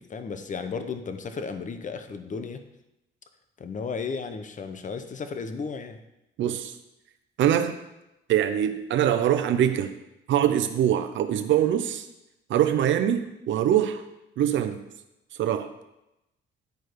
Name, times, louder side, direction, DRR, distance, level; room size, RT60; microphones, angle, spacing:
voice 1, 0.0-2.6 3.6-6.0, left 5 dB, 40° left, 8 dB, 0.9 m, -34 dB
voice 2, 6.4-6.7 7.4-7.7 8.3-9.9 10.3-12.1 12.5-14.0 14.4-14.8 15.4-15.7, right 10 dB, 70° right, 8 dB, 0.7 m, -23 dB
10.5 x 4.7 x 4.6 m, 0.90 s
cardioid pair, 90°, 20 cm